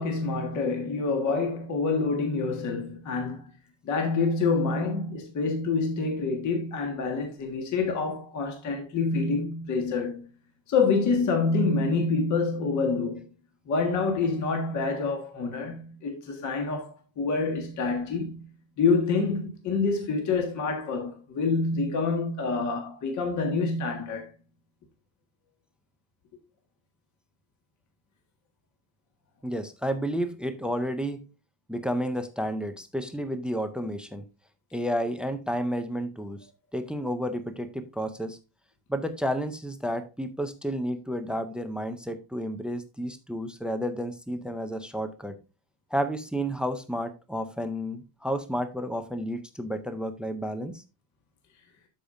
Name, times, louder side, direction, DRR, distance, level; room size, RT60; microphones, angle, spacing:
voice 1, 0.0-3.5 3.8-10.2 10.7-13.3 13.7-18.5 18.8-24.3, left 4 dB, 40° left, 1.7 m, -27 dB
voice 2, 29.4-31.2 31.7-34.2 34.7-36.5 36.7-38.4 38.9-45.3 45.9-50.8, equal, ahead, 0.3 m, -31 dB
13.0 x 5.0 x 2.6 m
cardioid pair, 155°, 47 cm